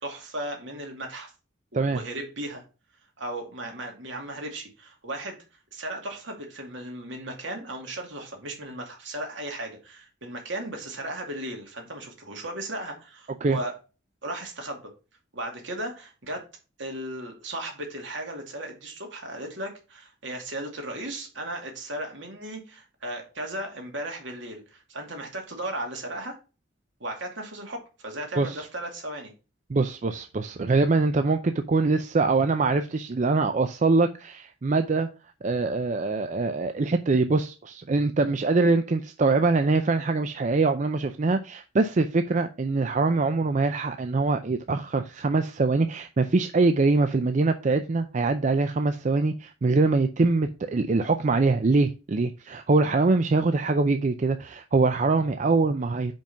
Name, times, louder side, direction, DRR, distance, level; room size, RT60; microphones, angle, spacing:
voice 1, 0.0-1.3 1.7-2.6 3.2-5.4 5.7-13.7 14.2-14.8 15.3-16.4 16.8-26.4 27.0-29.3, right 1 dB, 70° right, 2.4 m, -36 dB
voice 2, 29.7-35.1 35.4-56.1, right 3 dB, 40° right, 0.4 m, -23 dB
5.3 x 5.2 x 5.6 m
head